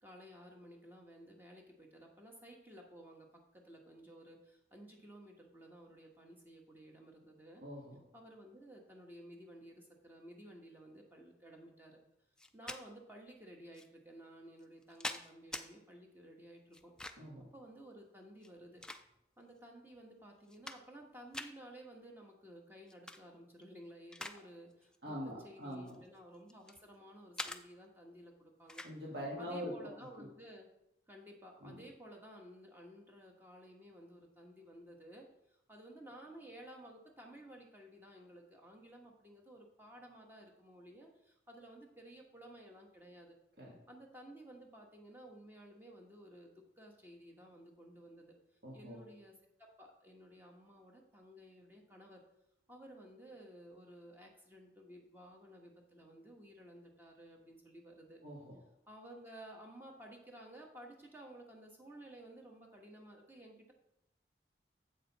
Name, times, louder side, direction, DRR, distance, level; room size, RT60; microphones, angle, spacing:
voice 1, 0.0-7.6 8.1-12.0 12.5-16.9 17.5-18.8 19.4-25.1 25.4-28.8 29.4-30.7 31.1-43.4 43.9-48.4 48.7-49.3 49.6-52.2 52.7-58.2 58.9-63.7, right 1 dB, 10° right, 0 dB, 1.2 m, -55 dB
voice 2, 7.6-8.0 17.2-17.5 25.0-26.0 28.8-29.9 30.2-30.3 31.6-31.8 43.6-43.8 48.6-49.0 58.2-58.6, equal, 60° right, -4 dB, 2.0 m, -44 dB
sound 1, 12.4-12.8 13.7-13.9 14.6-15.7 16.7-17.4 18.3-19.4 20.0-20.1 20.4-21.0 21.3-21.5 22.9-23.2 23.6-24.4 24.7-25.0 25.7-26.8 27.4-27.6 28.7-28.9, left 2 dB, 5° left, 0.3 m, -45 dB
7.7 x 6.6 x 4.1 m, 0.82 s
head